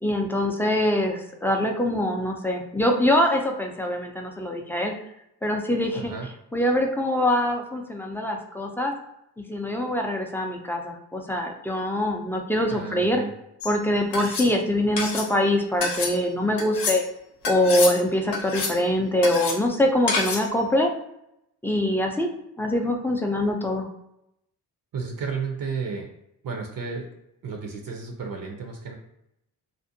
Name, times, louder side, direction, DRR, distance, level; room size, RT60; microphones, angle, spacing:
voice 1, 0.0-4.9 5.4-6.1 6.5-8.9 9.4-13.2 13.6-17.0 17.5-20.9 21.6-22.3 22.6-23.9, left 1 dB, 5° left, 1 dB, 0.3 m, -24 dB
voice 2, 6.0-6.3 12.7-13.3 24.9-26.1 26.4-27.1 27.4-28.9, right 5 dB, 60° right, 2 dB, 0.6 m, -32 dB
sound 1, 13.6-13.7 14.1-14.5 15.0-15.3 15.8-16.1 16.6-17.0 17.4-18.0 18.3-18.8 19.2-19.6 20.1-20.5, left 3 dB, 90° left, 0.7 m, -28 dB
2.5 x 2.1 x 2.6 m, 0.81 s
cardioid pair, 80°, 40 cm